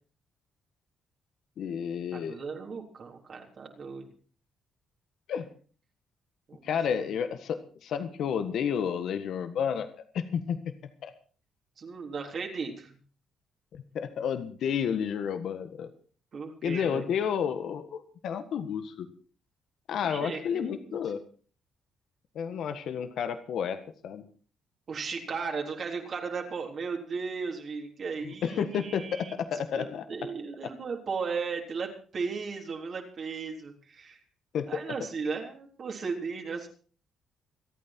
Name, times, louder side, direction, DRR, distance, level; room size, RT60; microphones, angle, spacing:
voice 1, 1.6-2.4 5.3-5.5 6.6-9.9 10.1-10.6 11.0-11.1 13.7-15.9 16.6-19.1 19.9-21.2 22.3-24.3 28.2-30.0 34.5-34.8, left 7 dB, 70° left, 9 dB, 1.5 m, -31 dB
voice 2, 2.1-4.1 6.5-7.0 11.8-13.0 16.3-17.1 20.0-21.0 24.9-29.3 29.7-34.2 34.7-36.7, right 5 dB, 50° right, 1 dB, 3.7 m, -36 dB
26.0 x 9.1 x 4.5 m, 0.41 s
cardioid pair, 90°, 0 cm